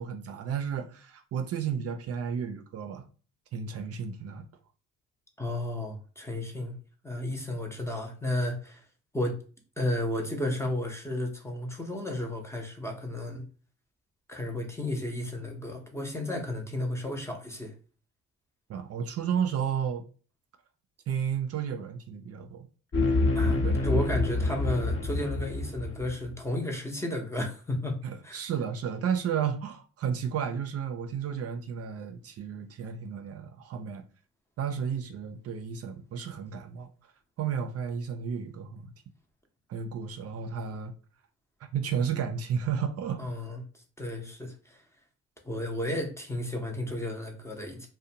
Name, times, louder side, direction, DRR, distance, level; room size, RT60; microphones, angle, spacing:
voice 1, 0.0-3.1 3.5-4.5 18.7-20.0 21.1-22.7 23.6-23.8 28.0-34.0 34.6-36.9 37.4-38.9 39.7-40.9 41.7-43.3, right 7 dB, 55° right, 0.4 m, -32 dB
voice 2, 5.4-6.7 7.0-8.8 9.1-9.4 9.8-13.5 14.3-17.7 23.3-28.0 28.2-28.4 43.2-43.6 44.0-44.8 45.4-47.9, left 1 dB, 10° left, 0.6 m, -33 dB
sound 1, 22.9-26.3, left 2 dB, 40° left, 0.8 m, -27 dB
2.5 x 2.1 x 2.7 m
cardioid pair, 90°, 30 cm